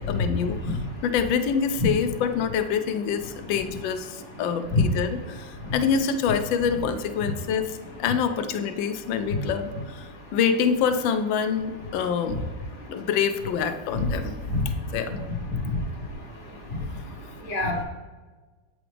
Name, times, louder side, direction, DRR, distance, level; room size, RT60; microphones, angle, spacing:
voice 1, 0.0-12.4 12.9-14.3 14.9-15.1 17.6-17.7, left 7 dB, 80° left, 9 dB, 1.3 m, -26 dB
voice 2, 15.5-15.8 16.7-17.0 17.4-17.8, left 2 dB, 30° left, -3 dB, 1.1 m, -26 dB
8.5 x 4.9 x 3.3 m, 1.3 s
omnidirectional pair, 2.1 m